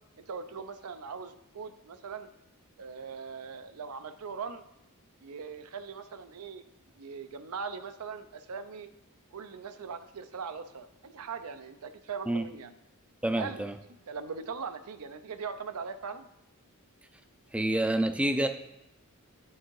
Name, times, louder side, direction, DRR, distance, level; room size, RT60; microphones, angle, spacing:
voice 1, 0.3-2.3 2.8-4.6 5.2-6.6 7.0-8.9 9.3-12.7 13.4-13.7 14.1-16.3, right 5 dB, 75° right, 10 dB, 0.5 m, -40 dB
voice 2, 13.2-13.7 17.5-18.5, right 1 dB, 5° right, 8 dB, 0.4 m, -27 dB
9.1 x 3.7 x 4.6 m, 0.85 s
head